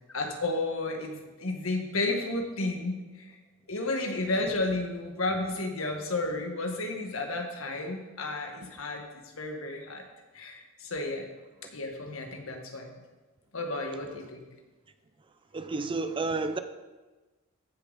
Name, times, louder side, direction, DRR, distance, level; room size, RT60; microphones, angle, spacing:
voice 1, 0.1-3.3 3.7-9.1 9.4-10.0 10.3-11.2 11.7-12.9 13.5-14.4, left 2 dB, 70° left, 3 dB, 1.5 m, -32 dB
voice 2, 15.5-16.6, right 3 dB, 25° right, 9 dB, 0.5 m, -31 dB
14.5 x 6.8 x 4.0 m, 1.2 s
head